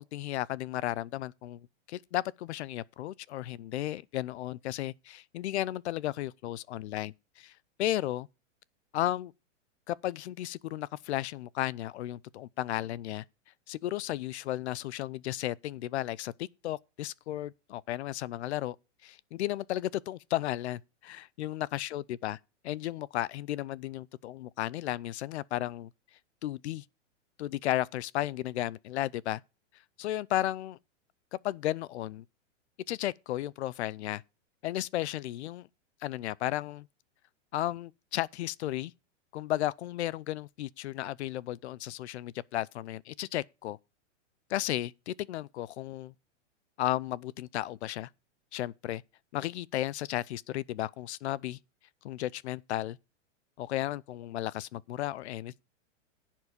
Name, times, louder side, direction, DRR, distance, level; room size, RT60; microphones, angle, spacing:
voice 1, 0.0-7.5 7.8-8.3 8.9-9.3 9.9-13.2 13.7-18.8 19.0-22.4 22.6-25.9 26.4-26.8 27.4-29.4 30.0-30.8 31.3-32.2 32.9-34.2 34.6-35.7 36.0-36.9 37.5-38.9 39.3-43.8 44.5-46.1 46.8-48.1 48.5-49.0 49.3-51.6 52.0-53.0 53.6-55.6, left 14 dB, 60° left, 0.6 m, -34 dB
10.5 x 7.4 x 5.2 m
hypercardioid pair, 150°, 38 cm